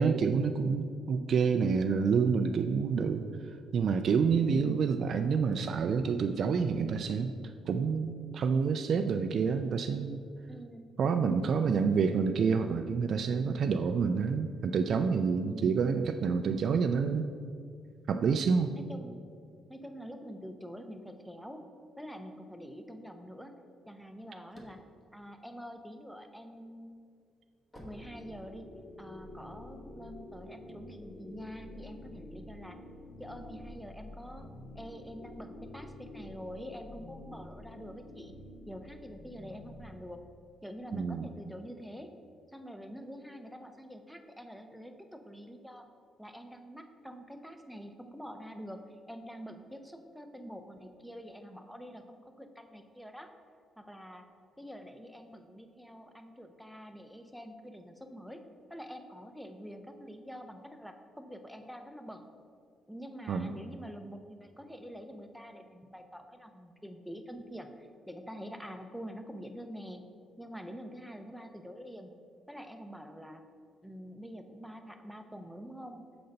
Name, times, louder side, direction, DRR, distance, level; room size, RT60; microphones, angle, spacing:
voice 1, 0.0-3.3 3.7-7.3 7.7-10.2 11.0-17.3 18.1-18.7 40.9-41.3 63.3-63.5, right 5 dB, 60° right, 7 dB, 0.3 m, -28 dB
voice 2, 4.4-4.7 10.5-11.6 15.3-15.8 18.7-19.2 19.7-21.6 22.0-23.5 23.9-24.8 25.1-27.0 27.8-28.7 29.0-32.8 33.2-34.5 34.7-38.3 38.6-40.2 40.6-42.2 42.5-45.9 46.2-53.3 53.8-54.3 54.6-58.4 58.7-62.3 62.9-70.1 70.4-72.1 72.5-73.4 73.8-76.0, equal, ahead, 6 dB, 0.6 m, -46 dB
sound 1, 24.4-26.2 26.7-28.9, equal, 20° left, 1.2 m, -53 dB
sound 2, 27.8-39.9, left 1 dB, 45° left, 0.9 m, -49 dB
6.8 x 3.9 x 5.2 m, 2.2 s
cardioid pair, 90°, 0 cm